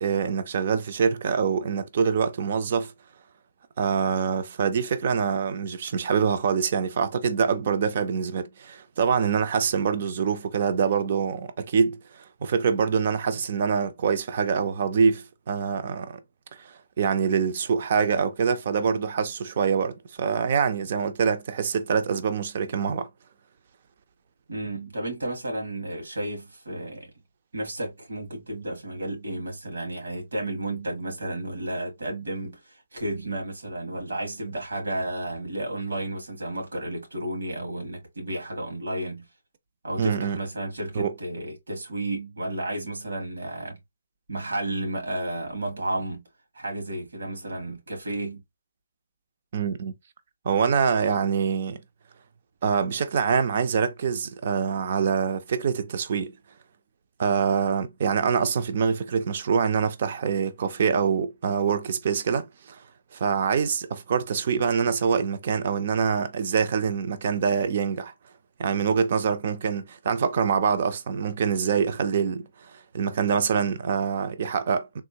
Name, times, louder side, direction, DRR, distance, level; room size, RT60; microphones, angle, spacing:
voice 1, 0.0-2.9 3.8-16.2 16.6-23.1 40.0-40.4 41.0-41.1 49.5-49.9 50.5-51.8 52.6-56.3 57.2-62.8 63.1-68.1 68.6-75.0, right 6 dB, 35° right, 0.4 m, -25 dB
voice 2, 24.5-27.1 27.5-39.2 39.8-43.8 44.3-46.2 46.5-48.4, right 1 dB, 90° right, 2.2 m, -32 dB
3.6 x 2.4 x 2.8 m
hypercardioid pair, 170°, 0 cm